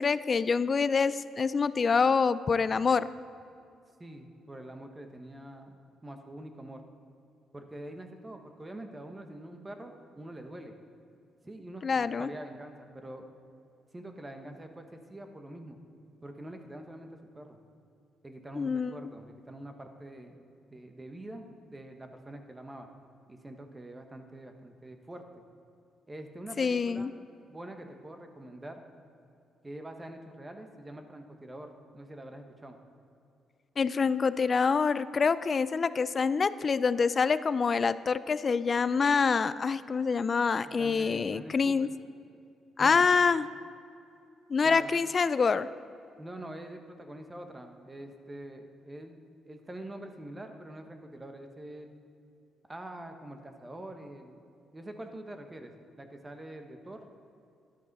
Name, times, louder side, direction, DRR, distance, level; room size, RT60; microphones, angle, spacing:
voice 1, 0.0-3.1 11.8-12.3 18.6-18.9 26.6-27.1 33.8-41.9 42.8-43.5 44.5-45.7, left 5 dB, 40° left, 16 dB, 0.4 m, -26 dB
voice 2, 4.0-6.8 7.5-10.7 11.4-13.3 13.9-15.8 16.2-17.6 18.2-20.4 20.7-22.9 23.3-25.4 26.1-27.1 27.5-28.8 29.6-32.8 40.6-41.9 42.8-43.1 44.6-44.9 46.2-52.0 52.7-54.4 54.7-57.0, right 1 dB, 20° right, 5 dB, 1.2 m, -45 dB
13.0 x 10.5 x 4.1 m, 2.6 s
cardioid pair, 90°, 0 cm